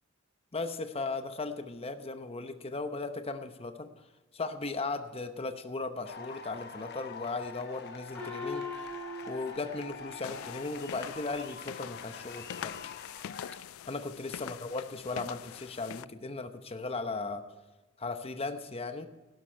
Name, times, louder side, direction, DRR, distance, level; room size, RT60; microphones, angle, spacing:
voice 1, 0.5-3.9 4.3-8.9 9.3-12.8 13.9-17.4 18.0-19.1, left 3 dB, 30° left, 8 dB, 0.8 m, -37 dB
sound 1, 6.0-13.6, left 5 dB, 50° left, 1.1 m, -46 dB
Gong, 8.1-11.1, left 3 dB, 5° left, 4.6 m, -42 dB
sound 2, 10.2-16.0, left 10 dB, 75° left, 0.3 m, -44 dB
12.0 x 11.5 x 4.5 m, 1.2 s
head